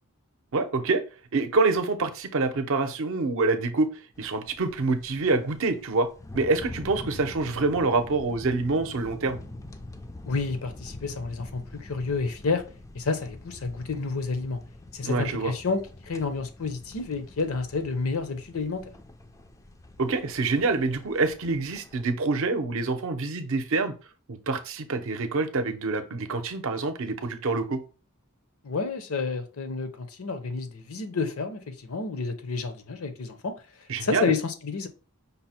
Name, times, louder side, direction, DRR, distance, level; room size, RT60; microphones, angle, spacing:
voice 1, 0.5-1.0 1.3-3.9 4.2-6.1 6.3-9.4 15.0-15.5 20.0-23.9 24.3-27.8 33.9-34.3, right 3 dB, 60° right, 0.6 m, -26 dB
sound 1, 4.1-22.1, left 2 dB, 15° left, 0.3 m, -45 dB
voice 2, 10.3-12.6 12.9-14.6 14.9-18.8 28.6-33.6 34.0-34.9, left 4 dB, 70° left, 0.7 m, -30 dB
5.4 x 2.1 x 4.2 m
head